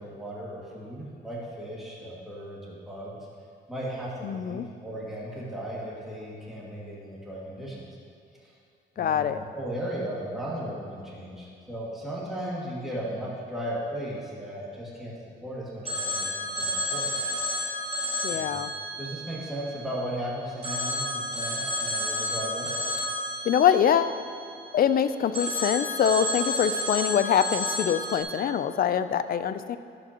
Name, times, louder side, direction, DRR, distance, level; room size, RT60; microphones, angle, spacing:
voice 1, 0.0-3.2 3.7-7.9 8.4-8.5 9.0-9.3 9.5-15.2 15.4-17.1 18.3-18.5 19.0-22.7, right 1 dB, ahead, -7 dB, 2.0 m, -36 dB
voice 2, 4.2-4.6 9.0-9.4 18.2-18.7 23.5-24.2 24.7-29.8, left 8 dB, 50° left, 12 dB, 0.4 m, -24 dB
Telephone, 15.8-20.1 20.6-24.8 25.3-28.2, left 1 dB, 30° right, 2.0 m, -31 dB
11.5 x 7.0 x 2.9 m, 2.4 s
cardioid pair, 90°, 20 cm